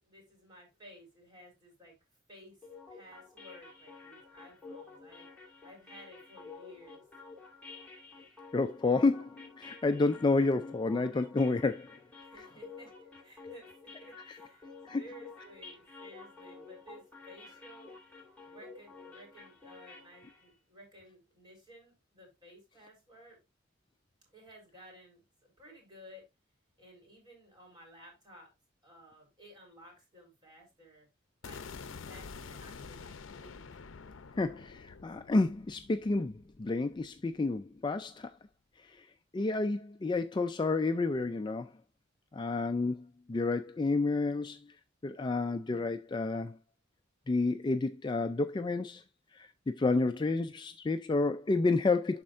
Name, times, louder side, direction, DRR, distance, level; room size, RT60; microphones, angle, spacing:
voice 1, 0.0-2.0 2.3-2.6 2.9-5.3 5.6-7.0 12.2-12.9 13.2-13.7 14.0-14.7 14.9-18.2 18.5-23.4 24.3-26.2 26.8-28.5 28.8-31.1 31.4-31.6 32.1-33.6, equal, 25° right, 4.1 m, -55 dB
sound 1, 2.6-20.5, left 4 dB, 10° left, 2.2 m, -51 dB
voice 2, 8.5-11.9 14.9-15.0 34.4-38.3 39.3-41.7 42.3-44.6 45.0-46.6 47.3-49.0 49.4-52.2, left 3 dB, 25° left, 0.3 m, -30 dB
sound 2, 31.4-37.5, left 5 dB, 80° left, 0.6 m, -48 dB
11.5 x 4.3 x 2.5 m
head